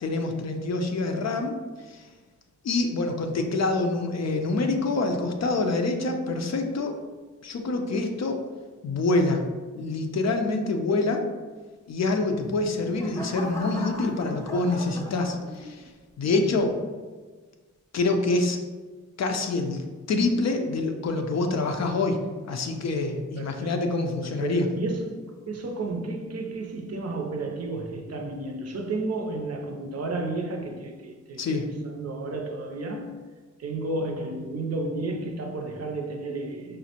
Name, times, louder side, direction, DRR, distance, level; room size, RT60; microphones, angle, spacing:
voice 1, 0.0-1.6 1.9-2.0 2.6-7.0 7.4-8.4 8.8-9.4 9.8-11.2 11.9-15.8 16.2-16.8 17.9-18.6 19.2-22.2 22.5-24.7 31.4-31.6, left 3 dB, 60° left, 0.5 m, -26 dB
sound 1, 12.4-15.9 16.4-16.8, left 1 dB, 10° left, 0.5 m, -39 dB
voice 2, 23.4-23.8 24.2-33.2 33.6-36.8, right 2 dB, 55° right, 0.5 m, -32 dB
5.0 x 2.1 x 2.8 m
cardioid pair, 80°, 31 cm